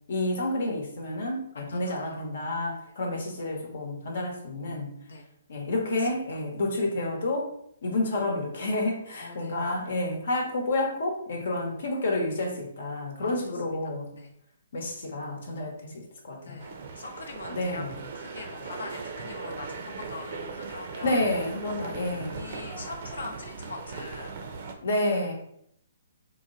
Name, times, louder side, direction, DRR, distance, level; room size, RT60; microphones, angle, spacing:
voice 1, 0.1-4.9 5.5-7.5 7.8-14.1 14.7-16.6 17.5-18.0 21.0-22.5 24.8-25.3, left 2 dB, 65° left, 1 dB, 1.0 m, -29 dB
voice 2, 1.5-2.3 2.9-3.0 5.0-5.3 5.9-6.4 9.2-9.6 13.2-13.6 14.1-14.3 16.4-17.8 18.1-21.2 22.3-24.4, left 3 dB, 85° left, 1 dB, 0.6 m, -42 dB
sound 1, 16.6-24.7, right 4 dB, 55° right, 0.5 m, -39 dB
3.1 x 2.1 x 3.8 m, 0.72 s
hypercardioid pair, 140°, 0 cm